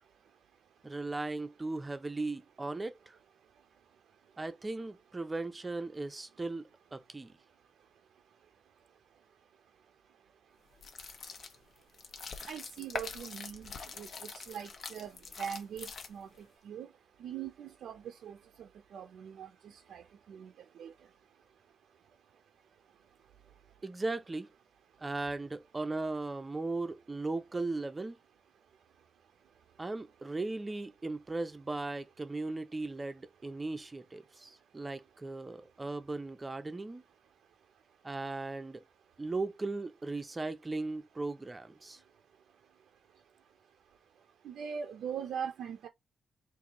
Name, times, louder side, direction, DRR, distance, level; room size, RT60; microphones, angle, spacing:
voice 1, 0.8-3.2 4.4-7.3 23.8-24.5 25.0-28.2 29.8-37.0 38.0-38.8 39.2-42.0, right 3 dB, 15° right, 0.5 m, -37 dB
sound 1, 10.7-16.4, left 5 dB, 50° left, 0.7 m, -44 dB
voice 2, 12.5-14.1 14.3-15.1 15.4-16.3 16.7-16.9 17.2-19.5 19.9-20.0 20.3-20.5 20.8-20.9 44.4-45.9, right 8 dB, 80° right, 0.5 m, -41 dB
3.8 x 2.6 x 2.9 m
wide cardioid pair, 160°, 0 cm